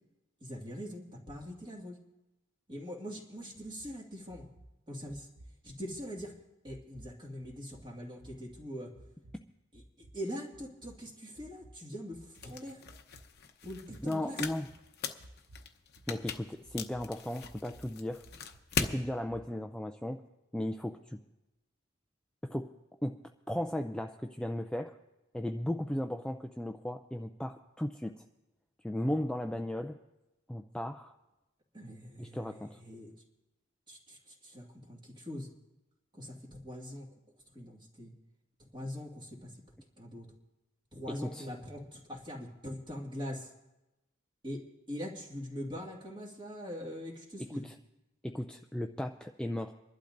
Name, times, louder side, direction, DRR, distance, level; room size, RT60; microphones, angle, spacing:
voice 1, 0.4-2.0 2.7-4.5 4.9-5.3 5.6-6.3 6.6-8.9 9.7-12.8 13.6-14.4 31.7-33.1 33.9-35.5 36.1-37.1 37.5-38.1 38.7-39.5 40.0-40.3 40.9-43.5 44.4-47.7, equal, 25° right, -1 dB, 2.0 m, -42 dB
sound 1, 3.5-3.9 4.3-4.7 5.1-5.5 5.9-6.3 6.6-7.1 7.4-7.8 8.2-8.6 8.9-9.4 9.7-10.1 10.5-10.9 11.3-11.7 12.1-12.5 12.9-13.2 13.6-14.0 14.4-14.8 15.2-15.7 15.9-16.4 16.6-17.0 17.4-17.9 18.2-18.6 19.0-19.4, right 1 dB, 85° right, 1.7 m, -55 dB
sound 2, 12.3-19.0, left 6 dB, 50° left, 0.8 m, -40 dB
voice 2, 14.0-14.7 16.1-18.2 18.8-20.2 20.5-21.2 22.4-22.7 23.0-23.2 23.5-25.0 25.3-28.1 28.8-30.0 30.5-31.1 32.2-32.8 41.1-41.5 47.6-47.7 48.2-49.7, left 1 dB, 5° left, 5 dB, 0.3 m, -36 dB
28.0 x 11.5 x 2.6 m, 0.97 s
head